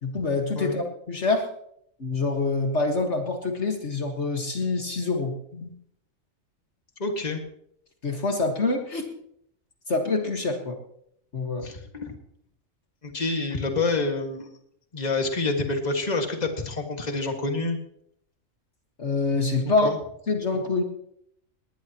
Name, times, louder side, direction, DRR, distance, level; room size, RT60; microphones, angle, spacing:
voice 1, 0.0-1.5 2.0-5.7 8.0-9.1 9.9-10.8 11.3-11.7 19.0-19.9 20.3-20.8, left 3 dB, 55° left, 3 dB, 2.0 m, -26 dB
voice 2, 7.0-7.4 11.6-12.2 13.0-14.5 14.9-17.8 19.8-20.0, left 3 dB, 30° left, 3 dB, 2.0 m, -27 dB
20.0 x 19.5 x 3.0 m, 0.70 s
omnidirectional pair, 1.4 m